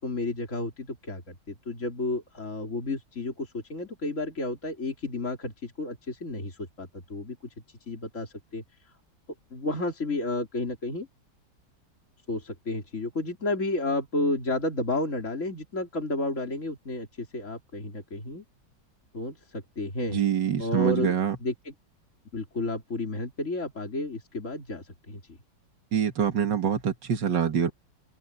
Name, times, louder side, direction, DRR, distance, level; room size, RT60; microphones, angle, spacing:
voice 1, 0.0-7.4 7.9-8.6 9.5-11.1 12.3-18.4 19.1-20.2 20.6-21.2 21.4-21.7 22.3-25.2, left 2 dB, 40° left, 4.0 m, -31 dB
voice 2, 20.1-21.4 25.9-27.7, right 8 dB, 70° right, 2.4 m, -25 dB
open air
omnidirectional pair, 2.0 m